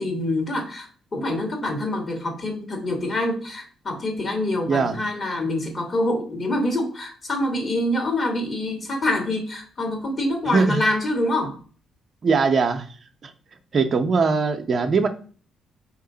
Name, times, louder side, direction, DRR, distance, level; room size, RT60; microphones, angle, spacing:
voice 1, 0.0-11.6, left 1 dB, 45° left, 4 dB, 1.7 m, -26 dB
voice 2, 12.2-12.8 13.2-13.3 13.7-15.1, right 4 dB, 50° right, 6 dB, 0.7 m, -20 dB
4.6 x 2.9 x 3.8 m, 0.40 s
hypercardioid pair, 50°, 0 cm